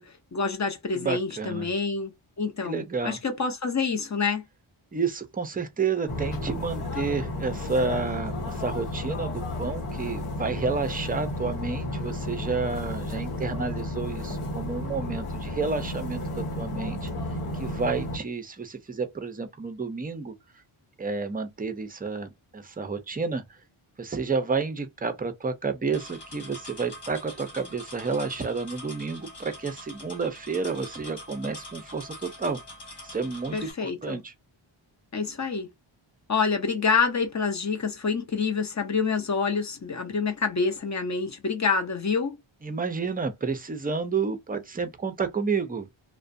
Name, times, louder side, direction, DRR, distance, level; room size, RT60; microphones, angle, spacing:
voice 1, 0.0-4.4 33.5-34.2 35.1-35.7 36.3-42.4, left 5 dB, 35° left, 0.7 m, -27 dB
voice 2, 0.9-1.7 2.6-3.2 4.9-17.1 17.5-20.3 21.0-23.6 24.0-32.6 33.0-34.3 42.6-45.9, right 4 dB, 20° right, 0.4 m, -30 dB
sound 1, 6.1-18.2, left 1 dB, 85° left, 1.0 m, -32 dB
sound 2, 25.9-33.7, left 1 dB, 55° left, 1.3 m, -44 dB
2.4 x 2.1 x 2.5 m
wide cardioid pair, 75°, 49 cm